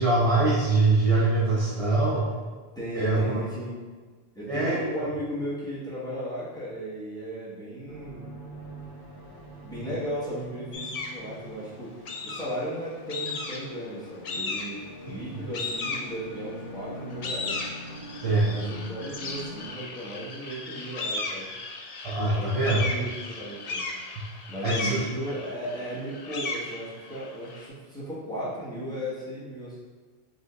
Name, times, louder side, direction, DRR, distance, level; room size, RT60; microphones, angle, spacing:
voice 1, 0.0-2.3 2.9-3.3 4.5-5.1 18.2-18.5 22.0-22.8 24.6-25.0, right 2 dB, 40° right, -5 dB, 0.6 m, -23 dB
voice 2, 2.7-3.7 4.3-8.3 9.6-11.9 12.2-17.6 18.4-21.5 22.4-23.8 24.5-29.8, right 1 dB, 5° left, -10 dB, 1.3 m, -35 dB
sound 1, 7.9-19.7, equal, 30° left, 1.3 m, -44 dB
sound 2, 10.7-11.2 12.1-12.7 13.1-13.8 14.2-14.9 15.5-16.5 17.0-27.7, left 3 dB, 50° left, 0.5 m, -35 dB
5.2 x 3.4 x 2.4 m, 1.4 s
omnidirectional pair, 1.1 m